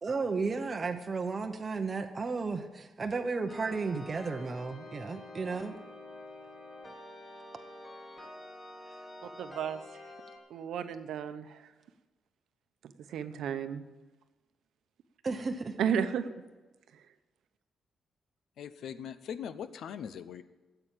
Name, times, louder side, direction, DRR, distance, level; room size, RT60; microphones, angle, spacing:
voice 1, 0.0-5.8 15.2-15.8, right 4 dB, 25° right, 4 dB, 0.8 m, -33 dB
sound 1, 3.5-10.4, left 1 dB, 20° left, 2.4 m, -48 dB
voice 2, 9.2-9.8 10.5-11.6 13.1-13.8 15.8-16.2, right 8 dB, 80° right, 10 dB, 0.9 m, -33 dB
voice 3, 18.6-20.4, left 8 dB, 70° left, 13 dB, 0.6 m, -41 dB
13.5 x 7.9 x 8.9 m, 1.2 s
wide cardioid pair, 155°, 0 cm